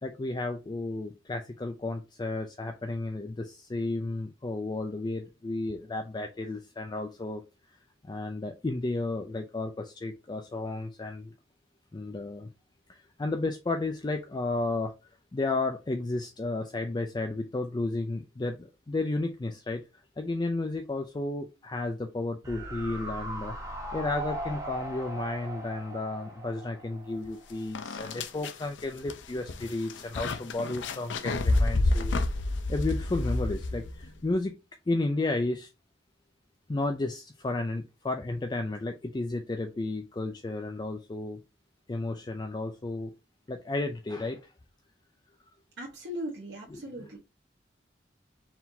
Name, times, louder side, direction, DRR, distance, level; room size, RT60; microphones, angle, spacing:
voice 1, 0.0-7.4 8.0-11.3 11.9-12.5 12.9-14.9 15.3-19.8 20.2-32.1 32.7-34.6 34.9-35.7 36.7-41.4 41.9-43.1 43.5-44.5 46.7-47.1, left 2 dB, 25° left, 0.4 m, -33 dB
sound 1, 22.4-27.7 28.0-28.1, right 1 dB, 20° right, 1.1 m, -39 dB
sound 2, 27.2-27.3 27.7-34.1, left 2 dB, 85° left, 0.6 m, -29 dB
voice 2, 45.8-47.2, equal, 70° right, 1.0 m, -38 dB
4.6 x 3.7 x 2.7 m
head